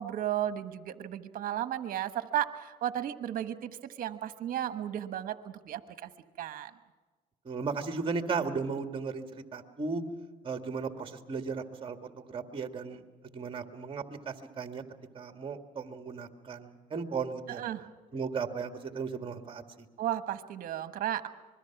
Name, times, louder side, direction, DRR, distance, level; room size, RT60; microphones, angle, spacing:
voice 1, 0.0-3.7 4.0-6.1 6.4-6.7 17.5-17.9 20.0-21.3, right 11 dB, 60° right, 10 dB, 1.3 m, -34 dB
voice 2, 7.5-10.0 10.4-14.8 15.1-17.6 18.1-19.9, right 5 dB, 35° right, 5 dB, 1.9 m, -36 dB
25.5 x 21.5 x 5.9 m, 1.3 s
supercardioid pair, 90°, 16 cm